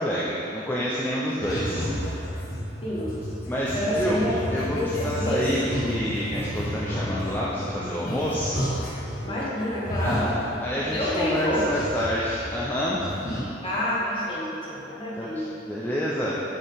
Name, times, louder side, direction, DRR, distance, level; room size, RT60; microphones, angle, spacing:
voice 1, 0.0-1.9 3.5-4.2 4.5-8.6 10.0-13.1 15.2-16.4, equal, 10° left, -7 dB, 0.5 m, -28 dB
sound 1, 1.4-9.3 9.6-12.7 13.0-13.4, equal, 55° left, 1.2 m, -32 dB
voice 2, 3.7-4.4 4.7-5.5 7.0-7.3 9.2-10.3 10.7-11.6 13.6-15.5, left 1 dB, 30° left, -8 dB, 1.4 m, -28 dB
7.2 x 4.5 x 3.5 m, 2.9 s
head